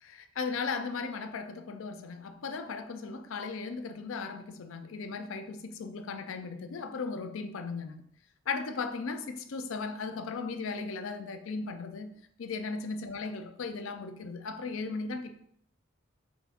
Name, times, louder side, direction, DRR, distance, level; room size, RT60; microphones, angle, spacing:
voice 1, 0.0-8.1 8.5-12.1 12.4-15.3, left 4 dB, 80° left, 8 dB, 0.4 m, -37 dB
5.8 x 2.5 x 3.5 m, 0.71 s
head